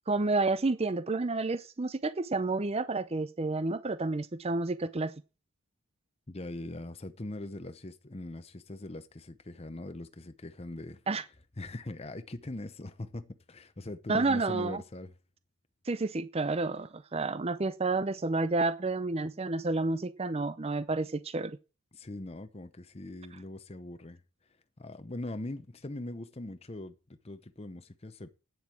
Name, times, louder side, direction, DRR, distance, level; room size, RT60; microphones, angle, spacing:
voice 1, 0.1-5.1 11.1-11.2 14.1-14.8 15.9-21.6, right 3 dB, 25° right, 0.6 m, -30 dB
voice 2, 6.3-11.0 11.6-15.1 21.9-24.2 24.8-28.3, left 1 dB, 30° left, 0.8 m, -41 dB
9.5 x 7.5 x 8.5 m
head